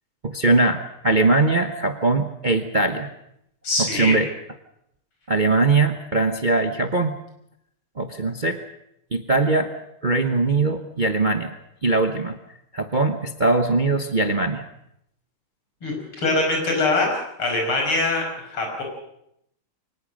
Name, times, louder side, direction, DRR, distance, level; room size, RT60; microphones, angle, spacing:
voice 1, 0.2-3.1 3.8-4.3 5.3-7.2 8.0-8.6 9.1-9.7 10.0-11.5 11.8-12.4 12.7-14.6, right 3 dB, 35° right, 7 dB, 0.8 m, -21 dB
voice 2, 3.6-4.1 15.8-17.1 17.4-18.8, left 2 dB, 85° left, 1 dB, 6.7 m, -23 dB
23.5 x 19.5 x 6.4 m, 0.77 s
omnidirectional pair, 2.3 m